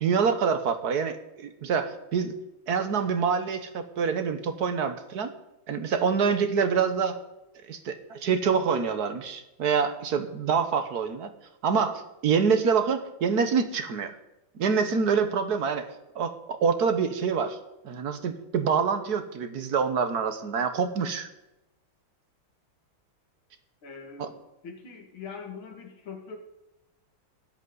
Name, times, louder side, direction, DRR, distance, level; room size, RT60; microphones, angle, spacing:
voice 1, 0.0-2.3 2.7-5.3 5.7-7.2 7.7-11.3 11.6-14.1 14.6-15.9 16.1-17.6 17.8-21.3 24.2-24.3, right 6 dB, 55° right, 9 dB, 1.5 m, -26 dB
voice 2, 23.8-26.4, left 5 dB, 75° left, 3 dB, 2.7 m, -42 dB
22.0 x 8.2 x 4.0 m, 0.93 s
omnidirectional pair, 2.2 m